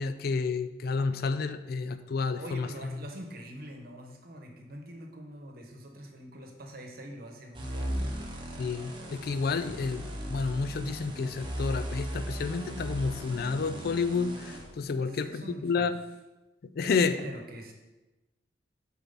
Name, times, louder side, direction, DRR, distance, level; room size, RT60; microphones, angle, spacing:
voice 1, 0.0-3.0 8.6-15.9 16.8-17.2, left 4 dB, 60° left, 11 dB, 0.4 m, -30 dB
voice 2, 2.4-8.2 15.0-15.9 16.8-17.7, right 1 dB, 55° right, 3 dB, 1.0 m, -44 dB
sound 1, 7.5-14.7, equal, 30° right, 0.9 m, -37 dB
6.8 x 4.6 x 4.1 m, 1.1 s
head